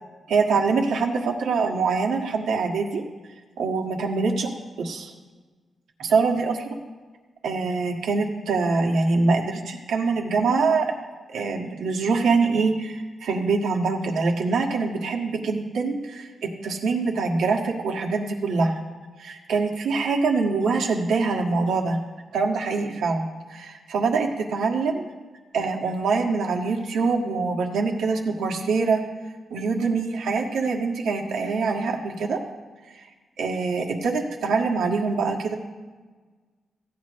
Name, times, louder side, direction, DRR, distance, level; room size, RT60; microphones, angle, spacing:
voice 1, 0.3-3.0 3.6-4.5 4.8-5.1 6.0-6.6 7.4-10.9 11.3-18.8 19.2-22.0 22.3-25.0 25.5-29.0 29.5-32.4 33.0-33.1 33.4-35.5, right 4 dB, 85° right, 1 dB, 1.6 m, -24 dB
16.0 x 9.7 x 3.1 m, 1.4 s
cardioid pair, 75°, 0 cm